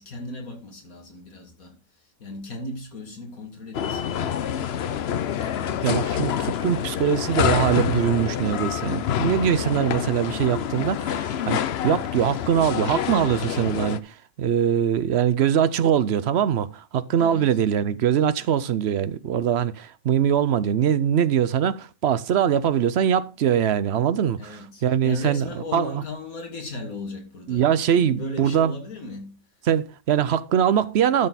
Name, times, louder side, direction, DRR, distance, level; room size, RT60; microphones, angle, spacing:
voice 1, 0.0-4.6 17.2-17.6 24.4-29.4, left 2 dB, 80° left, 2.8 m, -37 dB
sound 1, 3.7-14.0, left 9 dB, 55° left, 0.8 m, -27 dB
voice 2, 5.8-25.4 25.7-26.0 27.5-28.7 29.7-31.3, right 9 dB, 60° right, 0.8 m, -22 dB
12.0 x 6.6 x 4.1 m
omnidirectional pair, 1.5 m